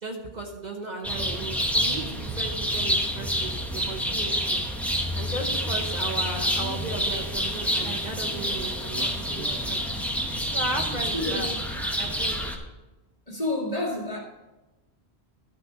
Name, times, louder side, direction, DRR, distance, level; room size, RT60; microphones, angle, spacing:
voice 1, 0.0-4.6 5.1-9.9 10.5-11.5 12.0-12.4, right 2 dB, 45° right, 1 dB, 1.0 m, -36 dB
sound 1, 1.0-12.6, equal, ahead, 0.8 m, -28 dB
voice 2, 11.1-11.5 13.3-14.2, left 2 dB, 35° left, -3 dB, 2.0 m, -29 dB
12.5 x 4.2 x 5.6 m, 1.1 s
omnidirectional pair, 1.1 m